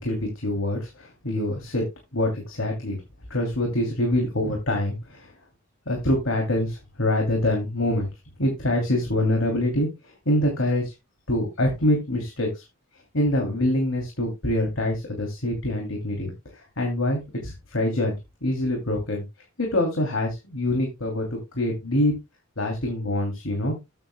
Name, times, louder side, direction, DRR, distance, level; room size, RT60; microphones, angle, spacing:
voice 1, 0.0-1.9 2.1-3.0 3.3-5.3 5.9-8.1 8.4-9.9 10.3-10.9 11.3-12.6 13.1-18.1 18.4-19.2 19.6-21.3 21.5-22.1 22.6-23.7, left 1 dB, 90° left, 1 dB, 2.9 m, -25 dB
13.5 x 8.9 x 2.2 m, 0.23 s
head